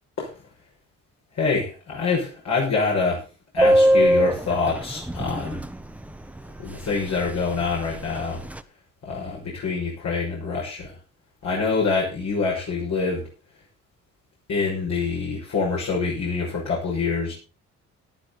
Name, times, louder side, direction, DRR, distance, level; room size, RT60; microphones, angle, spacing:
voice 1, 1.4-3.2 3.5-5.6 6.6-8.4 9.0-10.9 11.4-13.2 14.5-17.3, left 4 dB, 65° left, -4 dB, 6.3 m, -25 dB
Subway metro underground, 3.6-5.7 6.0-6.1 6.4-6.6 6.9-7.3 7.6-8.6, right 1 dB, 5° right, 1.1 m, -20 dB
14.0 x 11.5 x 4.1 m, 0.33 s
cardioid pair, 90°, 30 cm